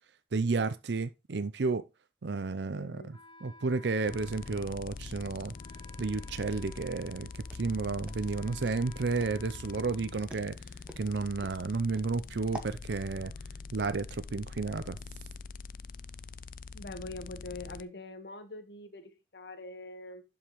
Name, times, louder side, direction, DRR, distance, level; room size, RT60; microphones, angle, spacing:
voice 1, 0.3-1.9 2.2-5.5 6.0-10.6 11.0-13.3 13.7-15.0, right 4 dB, 85° right, 0.6 m, -32 dB
voice 2, 2.7-3.1 16.7-20.2, left 2 dB, 75° left, 1.4 m, -44 dB
Wind instrument woodwind instrument, 3.1-10.8, left 1 dB, 30° left, 1.2 m, -56 dB
sound 1, 4.1-17.8, left 4 dB, 50° left, 0.4 m, -44 dB
Walk footsteps, 7.4-12.8, equal, 5° right, 1.5 m, -48 dB
11.5 x 5.5 x 3.1 m
head